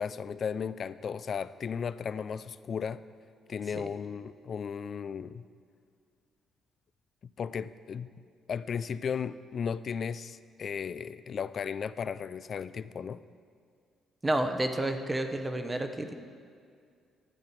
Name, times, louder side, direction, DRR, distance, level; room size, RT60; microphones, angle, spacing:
voice 1, 0.0-3.0 3.5-5.4 7.4-8.1 8.5-13.2, left 6 dB, 50° left, 15 dB, 0.3 m, -35 dB
voice 2, 14.2-16.1, right 1 dB, 20° right, 7 dB, 0.7 m, -30 dB
11.5 x 7.8 x 4.5 m, 2.2 s
cardioid pair, 90°, 0 cm